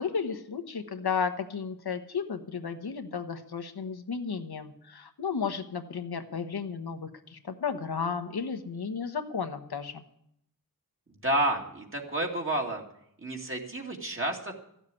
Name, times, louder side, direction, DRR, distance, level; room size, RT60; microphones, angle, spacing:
voice 1, 0.0-10.0, left 6 dB, 80° left, 8 dB, 1.2 m, -33 dB
voice 2, 11.2-12.8 13.2-14.5, right 1 dB, 35° right, 0 dB, 2.4 m, -30 dB
14.5 x 7.4 x 9.7 m, 0.74 s
wide cardioid pair, 85°, 37 cm